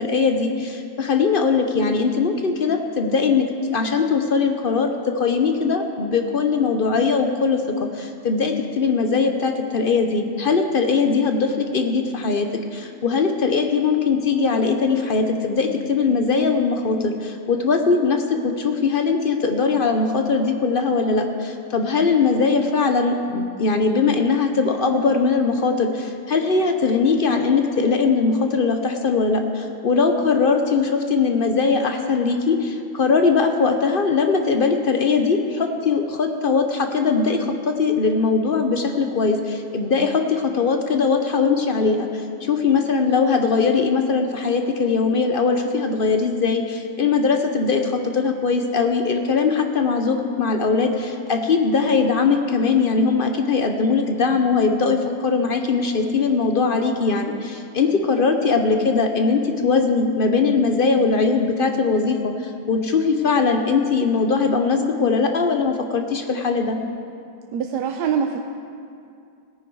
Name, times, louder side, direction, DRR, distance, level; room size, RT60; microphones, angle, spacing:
voice 1, 0.0-3.5 3.7-66.8, left 4 dB, 50° left, 5 dB, 0.6 m, -20 dB
voice 2, 67.5-68.4, right 7 dB, 85° right, 4 dB, 1.2 m, -23 dB
17.0 x 9.6 x 4.7 m, 2.4 s
omnidirectional pair, 1.7 m